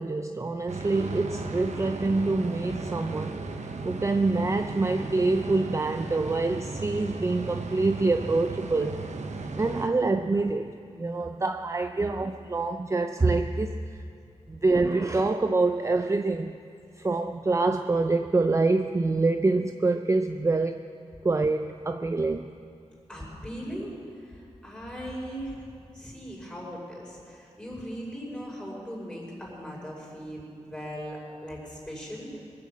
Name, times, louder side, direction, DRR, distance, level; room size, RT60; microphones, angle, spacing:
voice 1, 0.0-3.4 3.9-9.1 9.5-13.8 14.5-16.5 17.0-20.8 21.2-22.6, right 3 dB, 25° right, 7 dB, 0.4 m, -26 dB
sound 1, 0.7-9.9, right 3 dB, 85° right, 1.0 m, -36 dB
voice 2, 23.1-23.9 24.2-25.7 25.9-32.3, equal, 5° left, -4 dB, 5.1 m, -39 dB
22.0 x 7.7 x 7.3 m, 2.3 s
wide cardioid pair, 105°, 12 cm